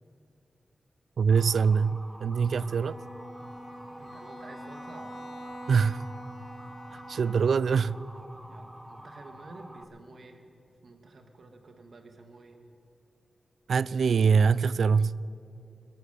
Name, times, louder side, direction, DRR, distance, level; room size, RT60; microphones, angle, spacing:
voice 1, 1.2-3.0 5.7-6.0 7.1-8.0 13.7-15.2, right 5 dB, 80° right, 0.3 m, -24 dB
Motor vehicle (road) / Siren, 1.3-9.8, right 1 dB, 10° right, 0.7 m, -48 dB
Bowed string instrument, 2.5-7.8, equal, 85° left, 3.5 m, -45 dB
voice 2, 4.0-5.2 8.5-10.4 10.8-12.6, right 2 dB, 55° right, 1.6 m, -50 dB
21.5 x 9.3 x 7.0 m
wide cardioid pair, 150°, 0 cm